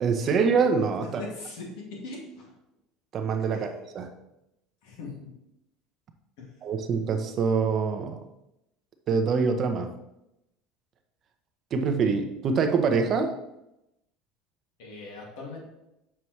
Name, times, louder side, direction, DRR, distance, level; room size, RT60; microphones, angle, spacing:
voice 1, 0.0-1.2 3.1-4.1 6.6-8.2 9.1-9.9 11.7-13.3, right 5 dB, 35° right, 6 dB, 0.7 m, -25 dB
voice 2, 1.2-2.5 3.5-3.7 4.8-5.3 6.4-6.5 14.8-15.6, left 3 dB, 80° left, -1 dB, 2.3 m, -40 dB
7.0 x 4.6 x 3.2 m, 0.87 s
cardioid pair, 145°, 0 cm